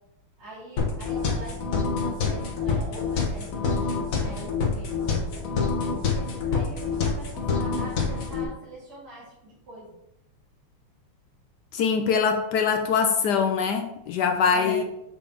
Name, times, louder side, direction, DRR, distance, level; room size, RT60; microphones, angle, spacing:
voice 1, 0.4-5.5 6.5-10.0 14.5-14.8, right 1 dB, 70° right, -10 dB, 3.7 m, -42 dB
sound 1, 0.8-8.4, left 4 dB, 50° left, 1.2 m, -27 dB
voice 2, 11.7-14.8, left 6 dB, 70° left, 5 dB, 1.0 m, -23 dB
6.9 x 6.4 x 3.5 m, 0.85 s
omnidirectional pair, 2.4 m